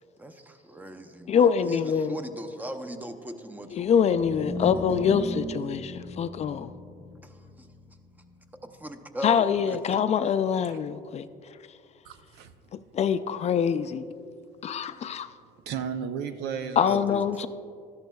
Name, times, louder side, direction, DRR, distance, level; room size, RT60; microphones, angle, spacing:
voice 1, 0.2-4.2 7.2-7.7 8.7-9.8 16.9-17.5, right 1 dB, 10° right, 8 dB, 0.6 m, -39 dB
voice 2, 1.3-2.2 3.7-6.7 9.2-11.3 12.7-14.0 14.6-15.3 16.8-17.5, left 7 dB, 40° left, 12 dB, 0.4 m, -24 dB
sound 1, 4.0-10.3, left 1 dB, 15° left, 0.9 m, -38 dB
voice 3, 12.0-12.7 15.7-17.1, right 7 dB, 80° right, 9 dB, 0.6 m, -34 dB
13.5 x 10.5 x 2.3 m, 2.3 s
cardioid pair, 110°, 17 cm